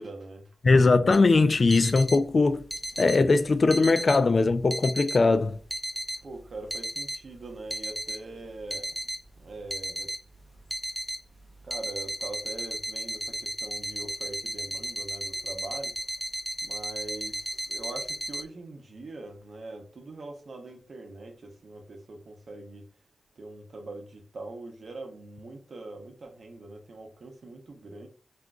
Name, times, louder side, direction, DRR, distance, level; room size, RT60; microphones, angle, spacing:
voice 1, 0.0-0.5 6.2-8.9 9.4-10.1 11.6-15.9 16.6-22.9 23.4-28.1, right 2 dB, 60° right, 0.8 m, -42 dB
voice 2, 0.6-2.6 3.0-5.6, left 3 dB, 50° left, 0.3 m, -20 dB
sound 1, 1.1-18.4, right 1 dB, 5° left, 0.7 m, -35 dB
3.6 x 2.5 x 2.3 m
cardioid pair, 45°, 0 cm